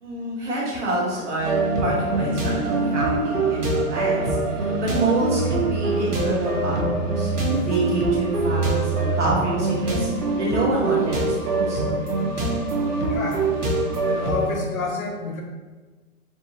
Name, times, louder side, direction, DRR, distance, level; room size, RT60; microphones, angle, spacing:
voice 1, 0.0-10.1 10.4-11.8, right 2 dB, 50° right, -5 dB, 1.2 m, -27 dB
sound 1, 1.4-14.5, right 3 dB, 90° right, 0.8 m, -24 dB
voice 2, 13.1-13.4 14.0-15.4, left 4 dB, 65° left, 1 dB, 0.7 m, -29 dB
3.0 x 2.3 x 2.8 m, 1.3 s
figure-of-eight pair, 135°, 44 cm